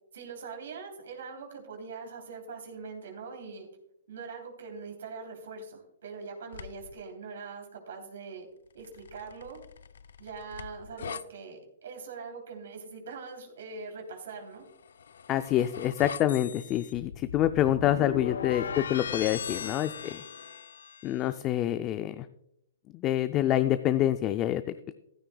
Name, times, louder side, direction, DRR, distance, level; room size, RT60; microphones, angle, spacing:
voice 1, 0.1-3.7 4.1-8.5 8.7-9.6 10.2-14.6 18.4-18.8 19.5-19.6, right 4 dB, 70° right, 2 dB, 3.2 m, -42 dB
sound 1, 6.5-7.0 8.8-11.2 14.7-21.1, left 7 dB, 80° left, 0.5 m, -39 dB
voice 2, 15.3-20.2 21.0-22.3 22.9-24.9, left 12 dB, 25° left, 11 dB, 0.4 m, -27 dB
14.0 x 12.5 x 2.3 m, 0.78 s
hypercardioid pair, 160°, 0 cm